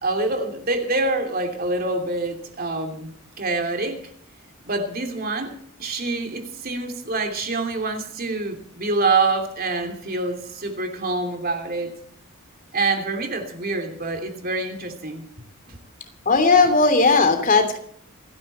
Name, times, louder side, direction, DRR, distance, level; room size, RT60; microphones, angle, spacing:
voice 1, 0.0-3.1 3.4-4.0 4.6-5.5 5.8-11.9 12.7-15.2 15.7-15.8, right 3 dB, 45° right, 5 dB, 3.0 m, -26 dB
voice 2, 16.2-17.8, left 4 dB, 40° left, 6 dB, 3.0 m, -17 dB
28.0 x 10.5 x 4.3 m, 0.62 s
head